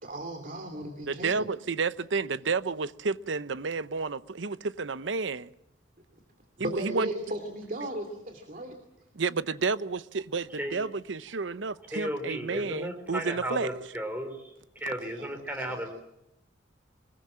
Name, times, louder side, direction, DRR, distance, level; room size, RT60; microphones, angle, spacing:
voice 1, 0.0-1.5 6.6-8.8 15.0-15.9, right 1 dB, 45° right, 2.9 m, -36 dB
voice 2, 1.1-5.5 6.6-7.1 9.1-13.8, right 4 dB, 75° right, 0.8 m, -31 dB
voice 3, 11.9-14.4 14.8-15.9, equal, 10° right, 4.2 m, -34 dB
24.5 x 21.5 x 7.6 m
head